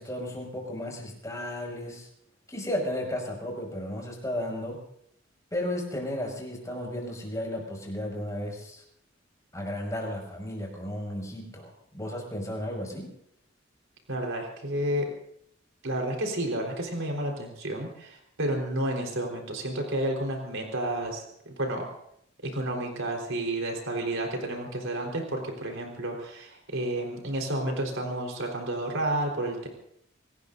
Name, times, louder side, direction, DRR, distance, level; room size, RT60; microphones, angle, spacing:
voice 1, 0.0-2.1 2.5-4.8 5.5-8.8 9.5-13.1, left 1 dB, 15° left, 0 dB, 5.9 m, -34 dB
voice 2, 14.1-15.1 15.8-21.9 22.4-29.7, right 1 dB, 85° right, 1 dB, 4.1 m, -31 dB
26.5 x 18.5 x 2.7 m, 0.72 s
head